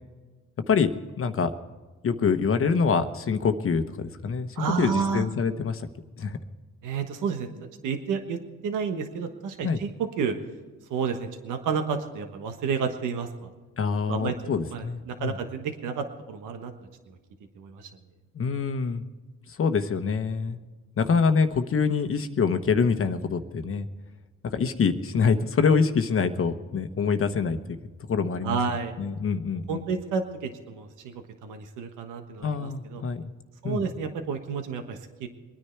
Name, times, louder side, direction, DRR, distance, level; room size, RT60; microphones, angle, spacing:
voice 1, 1.2-1.5 2.0-5.9 6.2-6.4 9.6-9.8 13.8-15.4 18.3-19.0 19.5-20.6 21.0-23.9 24.5-27.8 28.1-28.6 29.0-29.9 32.4-33.3 33.6-33.8, left 5 dB, 45° left, 9 dB, 1.1 m, -25 dB
voice 2, 4.6-5.3 6.8-7.5 7.8-8.4 8.6-10.3 10.9-13.5 14.1-16.7 17.1-17.2 17.6-17.9 28.4-28.9 29.7-33.0 33.6-35.3, right 6 dB, 90° right, 6 dB, 1.4 m, -30 dB
22.5 x 10.0 x 4.5 m, 1.3 s
cardioid pair, 90°, 30 cm